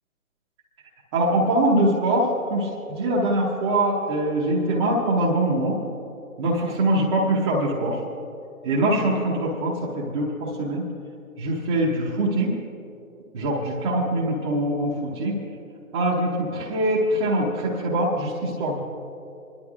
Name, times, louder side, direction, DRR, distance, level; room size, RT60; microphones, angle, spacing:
voice 1, 1.1-5.8 6.4-8.0 8.6-10.8 11.4-12.5 13.3-15.4 15.9-18.8, right 1 dB, 20° right, -6 dB, 0.9 m, -23 dB
27.5 x 11.5 x 2.4 m, 2.7 s
hypercardioid pair, 150°, 42 cm